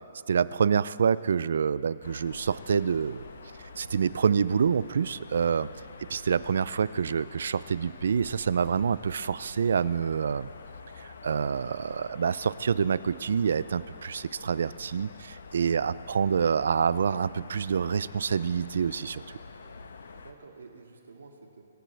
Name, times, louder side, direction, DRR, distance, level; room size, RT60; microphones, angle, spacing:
voice 1, 0.3-3.2 3.8-5.7 6.0-10.5 11.0-19.4, right 6 dB, 70° right, 18 dB, 0.4 m, -27 dB
sound 1, 2.0-20.3, left 4 dB, 80° left, 1.1 m, -47 dB
voice 2, 5.9-6.2 15.5-16.0 20.1-21.6, right 4 dB, 90° right, 2 dB, 2.1 m, -51 dB
24.5 x 14.0 x 3.4 m, 2.8 s
hypercardioid pair, 155°, 0 cm